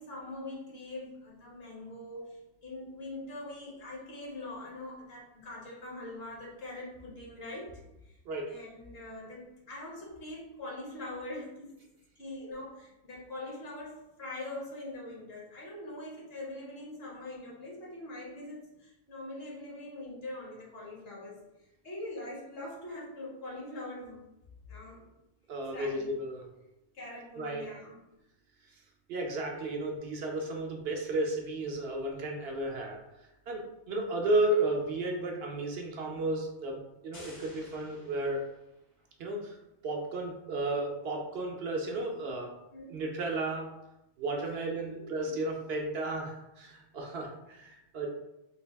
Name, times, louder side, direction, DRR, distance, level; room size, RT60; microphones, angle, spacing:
voice 1, 0.0-8.2 8.5-11.8 12.2-24.2 24.7-25.0 25.7-26.1 26.9-28.0 42.7-43.0 44.4-45.4, left 1 dB, 60° left, -4 dB, 1.2 m, -43 dB
voice 2, 25.5-26.5 27.4-27.7 29.1-33.0 33.5-38.4 39.2-39.6 39.8-42.5 42.9-43.7 44.2-48.1, right 2 dB, 65° right, 1 dB, 0.7 m, -33 dB
sound 1, 37.1-39.0, left 1 dB, 85° left, 1.8 m, -53 dB
3.3 x 2.3 x 3.3 m, 0.93 s
omnidirectional pair, 1.2 m